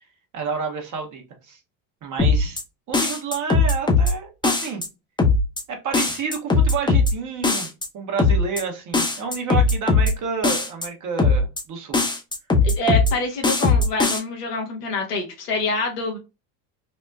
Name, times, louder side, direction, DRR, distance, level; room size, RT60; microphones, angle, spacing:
voice 1, 0.3-1.6 2.0-2.6 2.9-4.8 5.7-7.7 7.9-12.0, right 5 dB, 40° right, 3 dB, 1.1 m, -29 dB
sound 1, 2.2-2.6 2.9-4.1 4.4-4.9 5.2-5.6 5.9-7.1 7.4-7.9 8.2-8.6 8.9-10.1 10.4-10.9 11.2-11.6 11.9-13.1 13.4-14.2, left 3 dB, 10° left, 0.7 m, -19 dB
voice 2, 12.6-16.2, left 2 dB, 85° left, 2 dB, 1.1 m, -26 dB
4.2 x 2.1 x 2.2 m, 0.27 s
hypercardioid pair, 80°, 46 cm